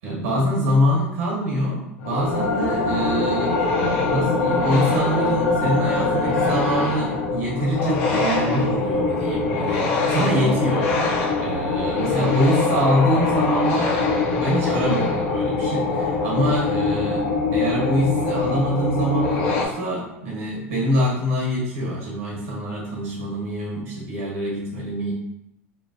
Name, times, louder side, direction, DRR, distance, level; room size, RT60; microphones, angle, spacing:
voice 1, 0.0-3.6 4.1-11.0 11.4-14.0 14.3-17.2 17.5-25.1, equal, 70° right, -3 dB, 1.2 m, -24 dB
sound 1, 2.0-19.7, left 3 dB, 65° left, 0.6 m, -23 dB
3.0 x 2.5 x 2.5 m, 0.83 s
hypercardioid pair, 85°, 7 cm